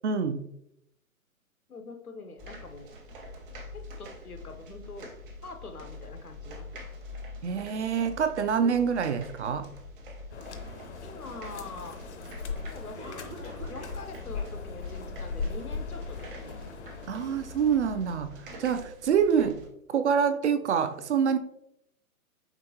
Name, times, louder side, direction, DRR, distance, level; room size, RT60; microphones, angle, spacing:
voice 1, 0.0-0.5 7.4-9.7 17.1-21.4, right 7 dB, 55° right, 10 dB, 0.5 m, -26 dB
voice 2, 1.7-2.9 3.7-5.1 5.4-6.9 11.0-12.0 12.4-16.6, left 3 dB, 90° left, 7 dB, 0.7 m, -44 dB
sound 1, 2.4-19.7, left 1 dB, 35° right, 1.0 m, -45 dB
sound 2, 10.3-18.3, left 4 dB, 55° left, 0.6 m, -39 dB
Cough, 12.9-14.1 14.3-14.5 15.0-15.1 15.7-15.8, right 1 dB, 10° left, 0.4 m, -44 dB
5.2 x 3.4 x 2.7 m, 0.80 s
figure-of-eight pair, 120°, 43 cm